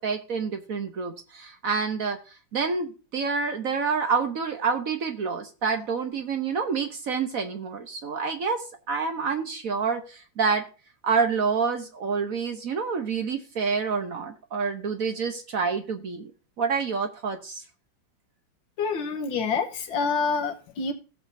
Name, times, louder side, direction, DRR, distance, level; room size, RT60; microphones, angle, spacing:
voice 1, 0.0-2.2 2.5-10.6 11.0-16.3 16.6-17.6, right 5 dB, 55° right, 1.1 m, -28 dB
voice 2, 18.8-20.9, left 5 dB, 90° left, 1.9 m, -27 dB
17.5 x 6.7 x 2.7 m
omnidirectional pair, 2.0 m